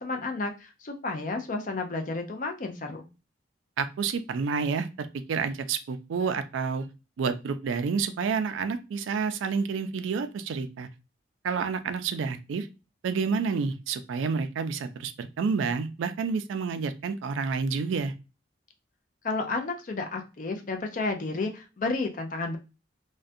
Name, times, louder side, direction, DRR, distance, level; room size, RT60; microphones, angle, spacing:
voice 1, 0.0-3.1 19.2-22.6, left 3 dB, 45° left, 4 dB, 0.4 m, -31 dB
voice 2, 3.8-6.8 7.2-10.9 11.4-12.7 13.0-18.1, right 5 dB, 85° right, 10 dB, 0.3 m, -29 dB
2.4 x 2.1 x 2.6 m, 0.30 s
head